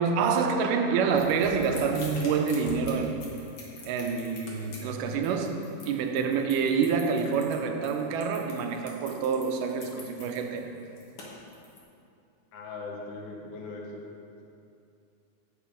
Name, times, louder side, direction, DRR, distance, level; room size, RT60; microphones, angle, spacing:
voice 1, 0.0-3.2 3.9-10.7, right 5 dB, 85° right, 5 dB, 2.3 m, -27 dB
sound 1, 1.2-11.8, left 3 dB, 55° left, 1.8 m, -43 dB
voice 2, 12.5-14.0, left 3 dB, 80° left, 0 dB, 2.5 m, -39 dB
8.5 x 6.6 x 5.1 m, 2.6 s
omnidirectional pair, 3.7 m